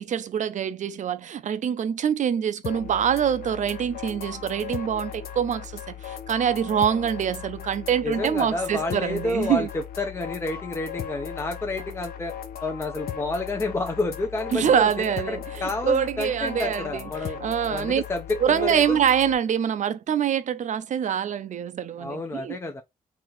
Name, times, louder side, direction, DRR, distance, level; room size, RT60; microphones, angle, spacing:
voice 1, 0.0-9.7 14.5-17.1 17.4-18.0 18.4-22.6, right 8 dB, 55° right, 0.5 m, -25 dB
sound 1, 2.6-19.3, left 9 dB, 85° left, 0.8 m, -37 dB
voice 2, 8.0-12.3 12.6-17.4 17.7-19.0 22.0-22.8, left 2 dB, 15° left, 0.6 m, -30 dB
3.9 x 2.8 x 3.0 m
wide cardioid pair, 145°, 15 cm